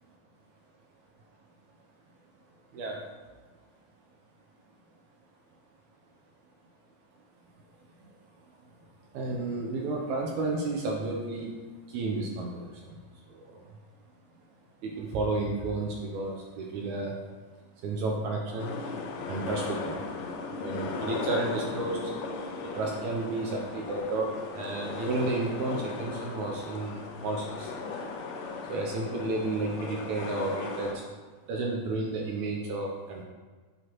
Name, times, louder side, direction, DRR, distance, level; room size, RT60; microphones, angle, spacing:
voice 1, 2.7-3.0 8.0-8.2 8.6-8.7 9.1-11.6 11.9-13.7 14.8-17.2 17.8-18.8 19.3-20.0 20.5-22.1 22.6-27.7 28.6-31.0 31.5-33.2, right 2 dB, 80° right, 0 dB, 1.7 m, -32 dB
sound 1, 18.6-30.9, left 4 dB, 80° left, 2.3 m, -37 dB
8.1 x 5.8 x 3.0 m, 1.4 s
omnidirectional pair, 4.1 m